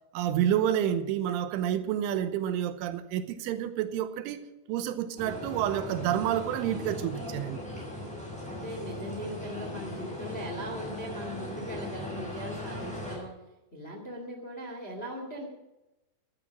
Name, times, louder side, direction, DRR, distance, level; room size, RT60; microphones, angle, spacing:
voice 1, 0.1-7.6, right 10 dB, 85° right, 3.3 m, -29 dB
sound 1, 5.2-13.2, left 1 dB, ahead, 6.0 m, -38 dB
voice 2, 8.4-13.3 13.7-15.4, equal, 65° left, 0.6 m, -39 dB
14.0 x 11.5 x 6.2 m
omnidirectional pair, 5.6 m